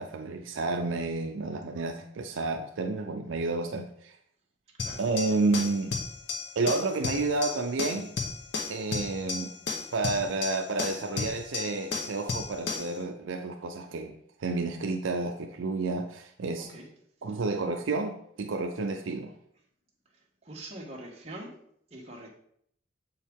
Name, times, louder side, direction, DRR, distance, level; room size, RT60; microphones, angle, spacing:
voice 1, 0.0-4.2 5.0-5.9 6.6-8.1 8.7-9.5 9.9-16.7 17.2-19.3, right 3 dB, 75° right, 5 dB, 0.5 m, -30 dB
sound 1, 4.8-13.0, left 4 dB, 60° left, 0.8 m, -34 dB
voice 2, 20.4-21.5 21.9-22.3, right 1 dB, 30° right, -1 dB, 1.2 m, -43 dB
7.0 x 4.6 x 3.5 m, 0.67 s
head